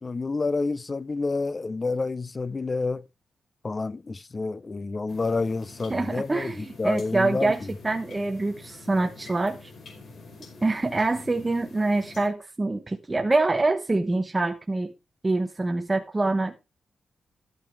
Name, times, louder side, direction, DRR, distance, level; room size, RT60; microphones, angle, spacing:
voice 1, 0.0-3.0 3.6-7.7, left 3 dB, 25° left, 0.5 m, -29 dB
sound 1, 5.1-12.3, left 3 dB, 60° left, 4.9 m, -46 dB
voice 2, 5.9-7.6 7.8-9.7 10.6-14.9 15.2-16.6, right 2 dB, 20° right, 0.9 m, -25 dB
13.5 x 9.0 x 3.3 m
wide cardioid pair, 140°, 0 cm